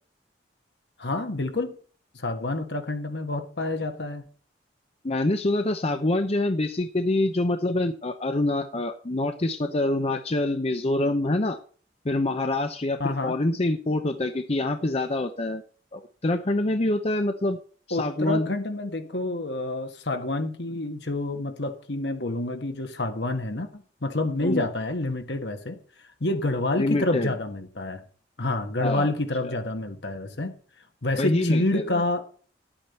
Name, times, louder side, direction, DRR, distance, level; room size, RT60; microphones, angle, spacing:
voice 1, 1.0-1.8 2.1-4.3 13.0-13.4 17.9-25.8 26.2-28.0 28.4-30.6 31.0-32.2, left 2 dB, 70° left, 1.6 m, -28 dB
voice 2, 5.0-11.6 12.0-15.6 15.9-17.6 17.9-18.5 24.4-24.6 26.8-27.3 28.8-29.1 31.2-32.0, left 2 dB, 35° left, 0.7 m, -26 dB
11.0 x 8.9 x 4.3 m
head